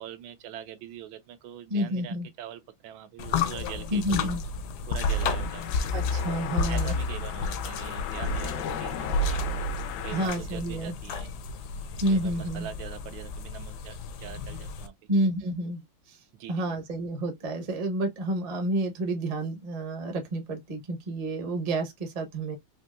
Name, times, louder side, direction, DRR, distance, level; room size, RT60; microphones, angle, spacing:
voice 1, 0.0-4.3 4.9-5.7 6.7-9.4 10.0-11.3 12.1-14.9 16.3-16.8, right 10 dB, 85° right, 1.4 m, -43 dB
voice 2, 1.7-2.3 3.9-4.4 5.9-6.9 10.1-10.9 12.0-12.7 15.1-16.2 16.5-22.6, right 1 dB, 35° right, 0.6 m, -29 dB
sound 1, 3.2-14.9, left 3 dB, 70° left, 1.0 m, -31 dB
sound 2, 5.0-10.3, left 10 dB, 85° left, 1.4 m, -37 dB
4.3 x 2.6 x 2.4 m
omnidirectional pair, 2.1 m